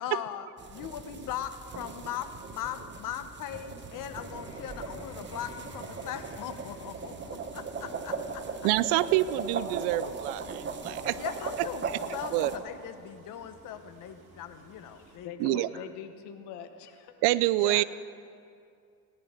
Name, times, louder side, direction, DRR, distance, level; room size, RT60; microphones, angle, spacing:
voice 1, 0.0-8.4 11.1-11.9 12.1-15.8 17.6-17.8, left 10 dB, 55° left, 10 dB, 1.0 m, -39 dB
sound 1, 0.6-12.6, right 5 dB, 30° right, 1.0 m, -38 dB
Vehicle, 1.7-10.8 11.4-11.6, left 1 dB, 15° left, 3.6 m, -52 dB
sound 2, 6.2-15.2, right 3 dB, 50° right, 2.1 m, -57 dB
voice 2, 8.6-11.2 12.3-12.5 15.4-15.7 17.2-17.8, right 16 dB, 80° right, 17 dB, 0.6 m, -26 dB
voice 3, 14.9-17.1, left 8 dB, 80° left, 7 dB, 1.3 m, -43 dB
18.5 x 10.5 x 5.0 m, 2.4 s
cardioid pair, 125°, 39 cm